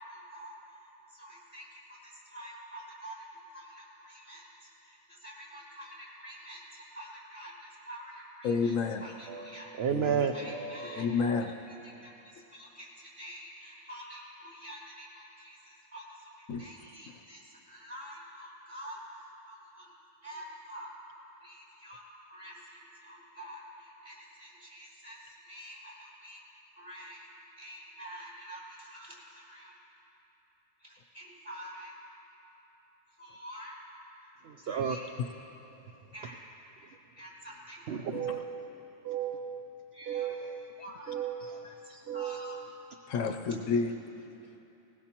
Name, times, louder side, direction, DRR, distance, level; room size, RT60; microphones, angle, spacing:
voice 1, 0.0-8.7 9.0-9.7 10.3-11.1 11.6-19.9 20.2-20.9 21.4-26.4 26.8-27.3 27.6-29.8 30.8-31.9 33.2-33.8 34.6-35.1 36.1-36.4 37.2-37.8 39.9-40.4 40.8-42.6, equal, 30° right, -7 dB, 4.2 m, -48 dB
voice 2, 8.4-9.0 9.9-10.3 11.0-11.8 16.5-16.7 17.1-17.2 38.1-38.4 43.1-43.9, left 5 dB, 70° left, 5 dB, 1.0 m, -30 dB
voice 3, 9.3-11.2 34.4-35.0 37.9-38.7 39.0-39.7 40.1-40.8 41.1-41.8 42.1-42.7, right 7 dB, 60° right, 5 dB, 0.7 m, -34 dB
20.0 x 19.5 x 2.9 m, 3.0 s
omnidirectional pair, 1.5 m